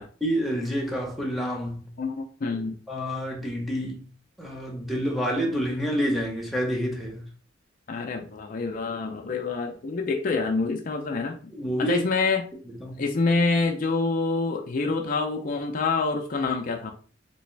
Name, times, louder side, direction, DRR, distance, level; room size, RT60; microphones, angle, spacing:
voice 1, 0.2-1.9 2.9-4.1 4.4-7.3 11.5-12.0 12.7-13.0, equal, ahead, 0.8 m, -28 dB
voice 2, 2.0-2.8 7.9-12.5 13.0-16.9, left 3 dB, 45° left, 0.4 m, -27 dB
3.3 x 3.0 x 3.1 m
head